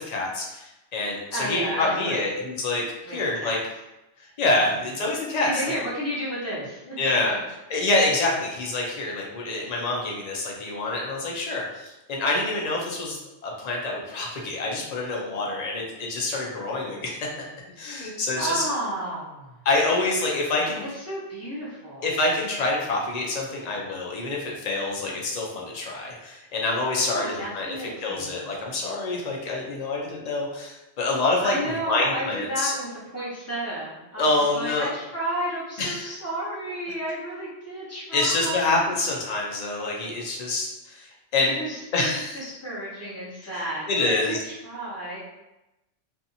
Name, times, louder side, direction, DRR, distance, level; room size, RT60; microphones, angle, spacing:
voice 1, 0.0-2.8 3.1-3.6 4.4-5.6 7.0-7.3 7.7-17.4 17.8-18.6 19.6-20.8 22.0-32.7 34.2-34.9 35.8-36.1 38.1-41.6 41.9-42.4 43.9-44.4, left 2 dB, 50° left, -2 dB, 0.5 m, -26 dB
voice 2, 1.3-2.2 3.1-3.6 5.4-7.0 18.4-19.5 21.1-22.1 27.1-28.5 31.4-39.0 41.4-45.2, right 1 dB, 15° left, -8 dB, 0.7 m, -32 dB
2.6 x 2.5 x 2.6 m, 0.97 s
omnidirectional pair, 1.3 m